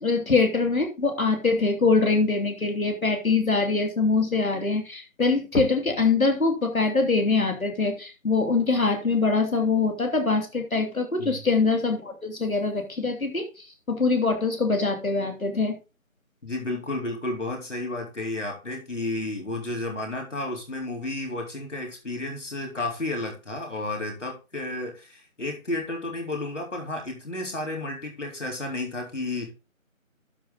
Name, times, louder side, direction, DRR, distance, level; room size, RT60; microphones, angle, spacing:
voice 1, 0.0-15.8, left 3 dB, 80° left, 4 dB, 2.9 m, -23 dB
voice 2, 16.4-29.5, left 2 dB, 60° left, 2 dB, 3.9 m, -32 dB
12.0 x 5.0 x 3.9 m, 0.30 s
figure-of-eight pair, 175°, 41 cm